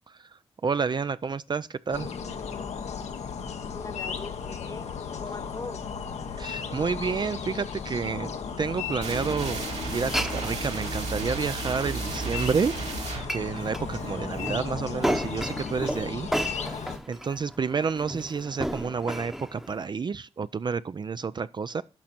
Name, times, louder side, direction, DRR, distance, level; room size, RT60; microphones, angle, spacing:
voice 1, 0.1-2.1 6.4-12.8 13.3-16.3 16.6-21.8, right 5 dB, 40° right, 0.4 m, -30 dB
sound 1, 1.9-17.0, left 6 dB, 85° left, 1.1 m, -35 dB
voice 2, 3.7-5.8, left 3 dB, 30° left, 1.1 m, -41 dB
sound 2, 9.0-14.6, right 4 dB, 75° right, 2.9 m, -34 dB
Glass, 9.9-19.8, equal, 5° right, 0.9 m, -34 dB
12.0 x 5.1 x 4.4 m
cardioid pair, 65°, 11 cm